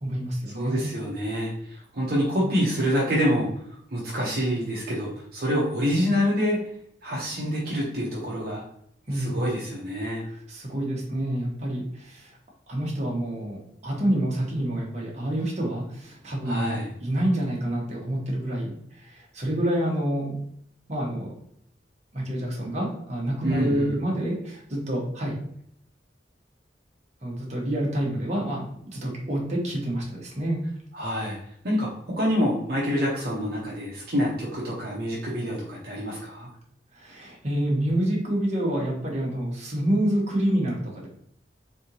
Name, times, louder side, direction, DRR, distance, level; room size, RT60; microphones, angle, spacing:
voice 1, 0.0-0.9 9.1-9.4 10.5-12.4 12.7-20.4 20.9-21.3 22.1-25.4 27.2-30.6 37.0-41.1, right 1 dB, 40° right, -3 dB, 1.2 m, -28 dB
voice 2, 0.5-3.5 3.9-6.6 7.0-8.6 9.1-10.2 16.4-16.9 23.4-23.9 30.9-31.4 31.6-36.5, equal, 60° right, -5 dB, 0.8 m, -26 dB
3.8 x 3.4 x 2.8 m, 0.69 s
head